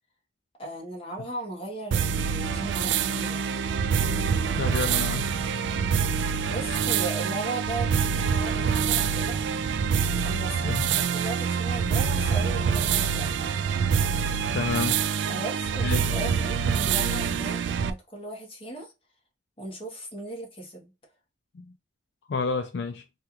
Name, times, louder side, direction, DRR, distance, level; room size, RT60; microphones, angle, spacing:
voice 1, 0.6-3.4 6.4-9.4 10.2-13.4 15.3-18.9 19.6-20.9, right 2 dB, 30° left, 1.2 m, -37 dB
sound 1, 1.9-17.9, right 6 dB, 70° right, 0.3 m, -26 dB
voice 2, 4.6-5.3 10.6-10.9 14.5-15.0 15.8-16.1 21.5-21.7 22.3-23.0, left 4 dB, 65° left, 0.4 m, -29 dB
3.4 x 2.4 x 2.8 m
head